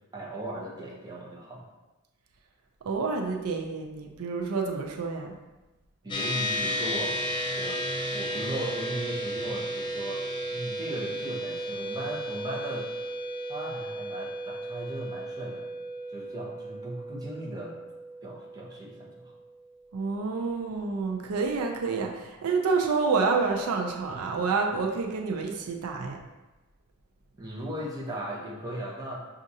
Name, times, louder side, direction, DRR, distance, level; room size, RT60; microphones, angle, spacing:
voice 1, 0.1-1.7 6.0-7.2 7.5-7.8 8.1-12.9 13.5-15.7 16.1-17.7 18.2-19.3 27.4-29.3, right 1 dB, 20° right, -5 dB, 0.8 m, -37 dB
voice 2, 2.8-5.4 19.9-26.2, right 4 dB, 80° right, 2 dB, 0.5 m, -28 dB
sound 1, 6.1-19.7, equal, 20° left, 0.5 m, -34 dB
6.2 x 2.5 x 2.7 m, 1.1 s
head